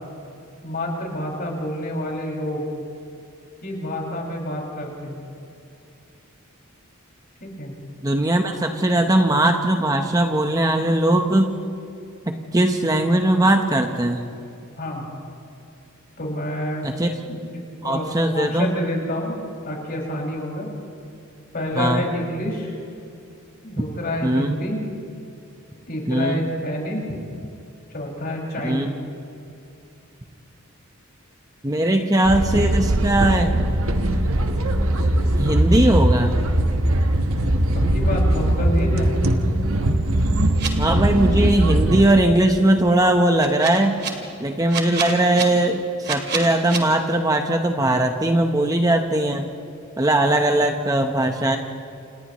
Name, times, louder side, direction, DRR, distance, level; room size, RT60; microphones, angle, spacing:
voice 1, 0.6-2.6 3.6-5.2 7.4-7.7 14.8-15.1 16.2-16.9 17.3-19.4 19.6-20.7 21.5-22.8 23.6-24.8 25.9-27.0 27.9-28.9 37.7-39.2, left 1 dB, 45° left, -2 dB, 5.9 m, -28 dB
voice 2, 8.0-11.5 12.3-14.2 16.8-17.1 17.8-18.7 21.8-22.0 24.2-24.6 26.1-26.4 28.6-28.9 31.6-33.5 35.4-36.3 40.8-44.0 44.4-49.5 50.0-51.6, right 1 dB, 15° right, 4 dB, 1.0 m, -19 dB
sound 1, 32.2-42.0, right 1 dB, 75° right, 1.3 m, -20 dB
sound 2, 40.6-40.7 43.4-44.1 44.7-45.4 46.0-46.8, right 6 dB, 55° right, 2.3 m, -27 dB
28.5 x 28.5 x 3.1 m, 2.6 s
head